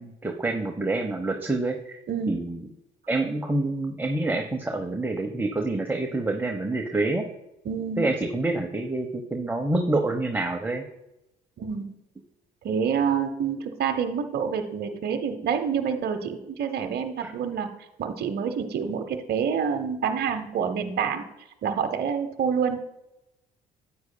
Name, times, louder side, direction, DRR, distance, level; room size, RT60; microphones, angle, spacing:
voice 1, 0.0-2.0 2.3-2.6 3.1-7.2 8.0-10.8 17.2-17.3, right 2 dB, 10° right, 3 dB, 0.9 m, -27 dB
voice 2, 2.1-2.4 7.6-8.1 11.6-11.9 12.6-17.7 18.0-21.2 21.6-22.8, right 7 dB, 55° right, 6 dB, 0.8 m, -27 dB
9.6 x 8.5 x 2.2 m, 0.90 s
hypercardioid pair, 60°, 20 cm